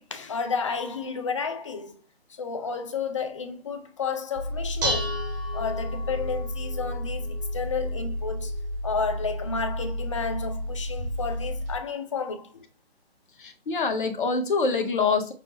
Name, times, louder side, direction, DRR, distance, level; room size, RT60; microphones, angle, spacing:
voice 1, 0.0-1.9 2.3-5.2 5.5-8.5 8.8-12.6, left 5 dB, 30° left, 0.5 m, -31 dB
Dishes pots and pans, 4.4-11.8, left 1 dB, 20° right, 0.9 m, -31 dB
voice 2, 13.4-15.3, left 4 dB, 50° left, 0.9 m, -25 dB
6.1 x 2.0 x 2.9 m
figure-of-eight pair, 140°, 32 cm